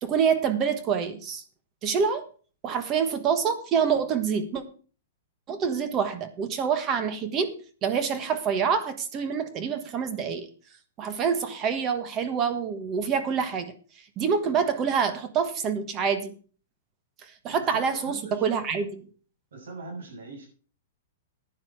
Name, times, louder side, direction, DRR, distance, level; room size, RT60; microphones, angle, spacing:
voice 1, 0.0-1.4 1.8-2.2 2.6-4.6 5.5-7.5 7.8-10.5 11.0-13.7 14.2-16.4 17.2-19.1, right 6 dB, 25° right, 10 dB, 1.3 m, -26 dB
voice 2, 17.4-18.5 19.5-20.5, right 3 dB, 80° right, 3 dB, 7.1 m, -41 dB
10.5 x 9.9 x 4.9 m, 0.39 s
hypercardioid pair, 155°, 0 cm